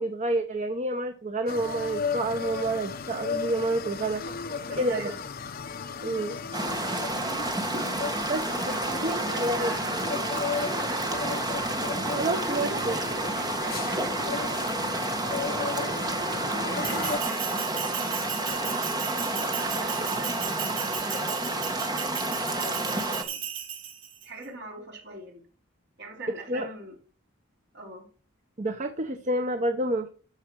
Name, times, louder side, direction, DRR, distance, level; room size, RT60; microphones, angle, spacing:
voice 1, 0.0-4.2 4.8-5.1 6.0-6.4 8.3-9.7 12.1-13.0 26.5-26.7 28.6-30.1, right 1 dB, 35° right, 7 dB, 0.8 m, -29 dB
sound 1, 1.5-17.2, left 5 dB, 50° left, 0.8 m, -35 dB
voice 2, 4.4-5.2 8.7-10.3 10.7-11.3 12.1-14.7 15.4-19.2 19.5-21.8 22.4-23.5 24.2-25.4 26.0-27.0 27.7-28.1, right 1 dB, 55° right, 0 dB, 3.8 m, -43 dB
sound 2, 6.5-23.2, right 2 dB, 20° right, 1.3 m, -30 dB
Bell, 16.8-24.3, right 9 dB, 85° right, 3.3 m, -36 dB
13.0 x 4.9 x 6.2 m, 0.40 s
head